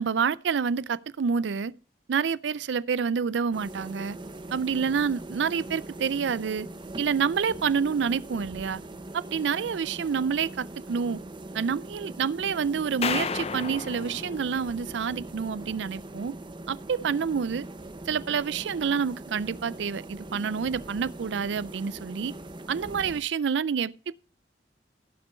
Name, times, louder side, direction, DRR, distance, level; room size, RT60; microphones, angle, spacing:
voice 1, 0.0-1.7 2.1-4.2 4.5-6.7 7.0-8.8 9.1-11.2 11.5-16.4 16.7-17.7 18.1-22.3 22.7-24.2, right 6 dB, 90° right, 0.4 m, -28 dB
sound 1, 3.5-23.2, right 2 dB, 25° right, 0.8 m, -41 dB
sound 2, 13.0-15.3, left 5 dB, 35° left, 0.5 m, -33 dB
16.5 x 6.0 x 4.4 m
head